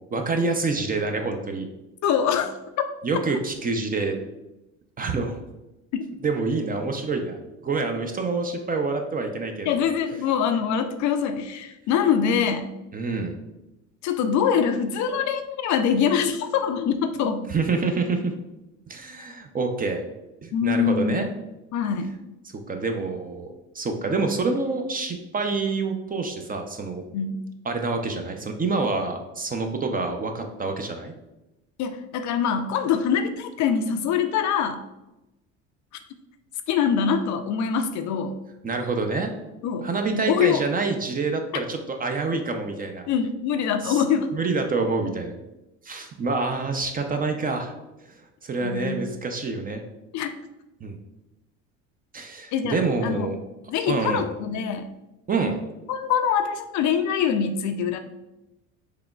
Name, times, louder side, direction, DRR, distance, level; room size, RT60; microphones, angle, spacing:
voice 1, 0.1-1.7 3.0-4.1 5.0-5.4 6.2-7.4 7.6-9.9 12.9-13.4 17.5-18.3 18.9-20.0 20.4-21.3 22.7-23.5 23.7-27.0 27.7-31.1 38.6-39.3 39.8-43.1 43.8-44.0 44.3-45.3 45.8-47.7 48.4-49.8 50.8-51.0 52.1-53.4 53.9-54.2 55.3-55.6, right 3 dB, 25° right, 5 dB, 0.5 m, -27 dB
voice 2, 2.0-2.5 2.8-2.9 5.9-6.1 9.7-12.7 14.0-17.5 20.5-21.3 21.7-22.1 27.1-27.5 31.8-34.8 36.7-38.4 39.6-40.7 41.5-41.6 43.1-44.3 48.6-49.0 50.1-50.3 52.5-53.4 53.7-54.9 55.9-58.0, left 7 dB, 50° left, 8 dB, 0.4 m, -24 dB
4.9 x 2.9 x 2.3 m, 0.96 s
hypercardioid pair, 70°, 39 cm